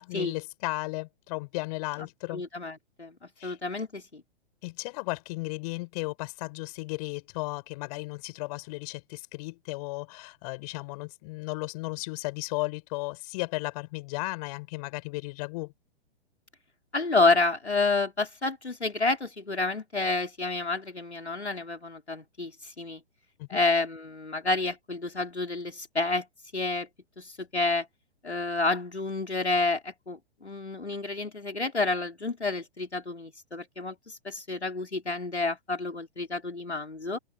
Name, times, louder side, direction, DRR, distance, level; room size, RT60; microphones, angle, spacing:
voice 1, 0.0-2.4 3.4-3.6 4.6-15.7 23.4-23.6, left 24 dB, 35° left, 6.0 m, -35 dB
voice 2, 2.3-3.1 3.4-4.2 16.9-23.0 23.5-26.3 26.5-26.9 27.2-27.9 28.2-37.2, left 3 dB, 80° left, 4.2 m, -29 dB
open air
figure-of-eight pair, 115°, 32 cm